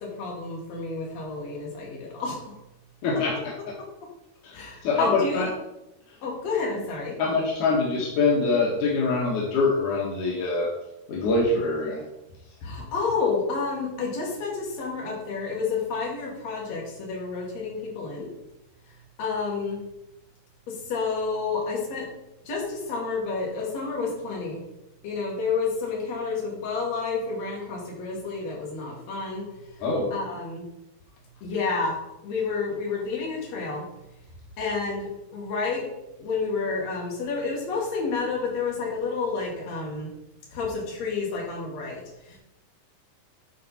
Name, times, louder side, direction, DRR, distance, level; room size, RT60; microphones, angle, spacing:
voice 1, 0.0-2.5 4.5-5.5 6.2-7.1 12.6-18.3 19.2-19.8 20.7-22.1 22.4-24.6 25.0-29.5 30.1-30.6 31.4-32.0 32.2-33.8 34.6-35.8 36.2-40.1 40.5-42.4, left 4 dB, 60° left, -2 dB, 3.0 m, -30 dB
voice 2, 3.0-3.5 4.4-5.5 7.2-10.7 11.1-12.0 29.8-30.1, left 3 dB, 80° left, -3 dB, 2.7 m, -24 dB
10.5 x 4.4 x 4.1 m, 0.91 s
omnidirectional pair, 3.6 m